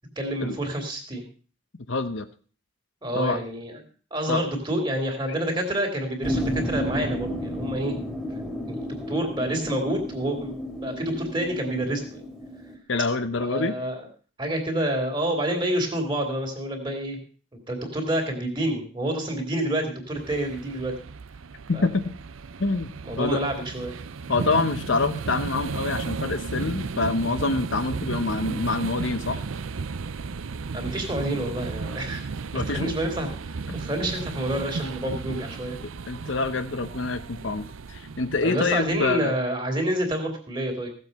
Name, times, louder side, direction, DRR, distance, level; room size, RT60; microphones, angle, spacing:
voice 1, 0.2-1.3 3.0-3.8 4.1-8.0 8.7-10.6 10.8-12.2 13.5-14.1 14.4-17.2 17.7-20.9 21.7-21.9 23.0-24.0 30.7-32.2 32.7-33.3 33.7-35.8 38.4-40.9, right 1 dB, 20° right, 4 dB, 2.9 m, -28 dB
voice 2, 1.9-2.3 3.1-3.4 4.3-4.4 12.9-13.7 21.7-22.0 22.6-22.9 23.2-23.4 24.3-29.4 32.5-32.9 33.7-33.8 36.1-39.3, left 3 dB, 65° left, 10 dB, 0.9 m, -26 dB
sound 1, 6.2-12.8, equal, 5° right, 2.3 m, -32 dB
sound 2, 20.2-39.2, right 4 dB, 75° right, 0.6 m, -34 dB
16.5 x 7.6 x 5.3 m, 0.40 s
head